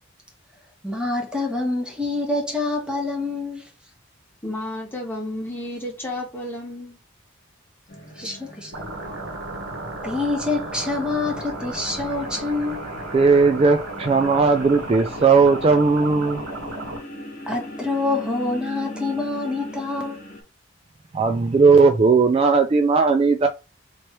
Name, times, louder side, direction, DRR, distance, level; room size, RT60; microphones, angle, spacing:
voice 1, 0.8-3.6 8.2-8.7 10.0-12.8 17.5-20.2, left 3 dB, 5° right, 1.1 m, -26 dB
voice 2, 4.4-7.0 8.2-8.4, left 1 dB, 10° left, 1.4 m, -32 dB
sound 1, 7.9-20.4, left 1 dB, 40° left, 1.5 m, -39 dB
sound 2, 8.7-17.0, right 2 dB, 70° right, 1.3 m, -34 dB
voice 3, 13.1-16.4 21.1-23.5, right 4 dB, 30° right, 0.3 m, -17 dB
3.1 x 2.9 x 4.5 m
head